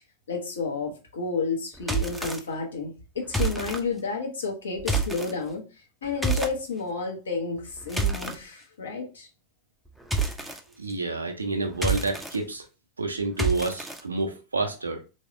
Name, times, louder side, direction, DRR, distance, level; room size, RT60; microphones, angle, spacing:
voice 1, 0.3-5.6 6.0-9.3, left 4 dB, 70° left, 1 dB, 0.9 m, -31 dB
sound 1, 1.8-2.4 3.3-3.8 4.8-5.3 6.2-6.6 7.6-8.4 10.1-10.6 11.7-12.4 13.4-14.0, right 3 dB, 5° right, 0.5 m, -27 dB
voice 2, 10.8-12.6 13.0-15.0, right 3 dB, 75° right, 4 dB, 0.5 m, -29 dB
3.2 x 2.7 x 2.5 m, 0.32 s
figure-of-eight pair, 90°, 0 cm